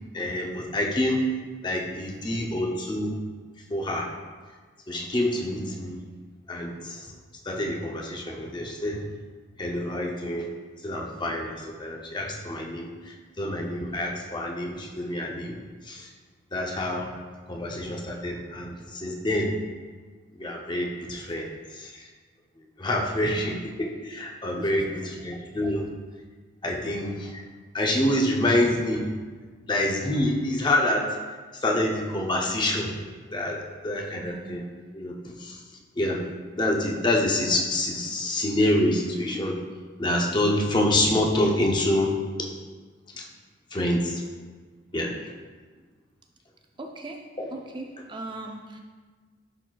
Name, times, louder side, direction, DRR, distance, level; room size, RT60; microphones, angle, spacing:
voice 1, 0.1-1.2 1.6-3.1 3.7-4.1 4.9-6.0 6.5-7.0 7.5-9.0 9.6-10.5 10.8-11.5 11.8-15.5 15.8-16.1 16.5-17.1 17.5-19.5 20.3-21.5 21.7-22.1 22.8-25.8 26.6-27.4 27.7-29.1 29.7-31.1 31.6-32.9 33.3-34.6 34.9-35.6 36.0-36.2 36.6-39.6 40.0-42.2 43.2-43.3 43.7-44.2 44.9-45.1, left 1 dB, 25° left, 0 dB, 0.6 m, -27 dB
voice 2, 23.1-23.5 24.6-25.1 34.1-34.5 46.8-48.8, right 2 dB, 25° right, 3 dB, 0.4 m, -40 dB
10.5 x 4.0 x 2.3 m, 1.4 s
head